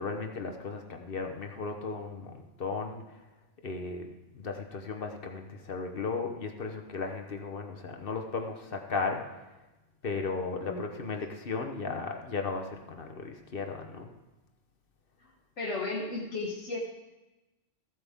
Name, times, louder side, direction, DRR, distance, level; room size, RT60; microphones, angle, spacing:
voice 1, 0.0-3.0 3.6-4.1 4.3-9.2 10.0-14.1, left 4 dB, 50° left, 3 dB, 1.0 m, -35 dB
voice 2, 10.6-11.0 15.6-16.8, left 3 dB, 75° left, -2 dB, 1.5 m, -34 dB
15.0 x 7.8 x 3.5 m, 1.1 s
omnidirectional pair, 1.3 m